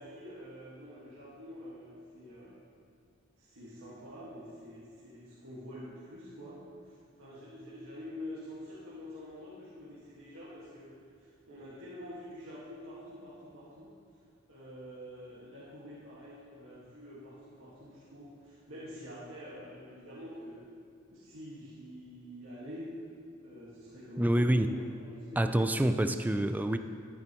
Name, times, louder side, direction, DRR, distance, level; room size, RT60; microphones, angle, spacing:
voice 1, 0.0-2.6 3.4-13.9 14.5-20.7 21.1-22.9 23.4-24.7 25.0-25.5, equal, 80° right, -10 dB, 1.8 m, -47 dB
voice 2, 24.2-24.7 25.4-26.8, right 1 dB, 10° right, 8 dB, 0.3 m, -27 dB
12.0 x 9.8 x 3.1 m, 2.4 s
head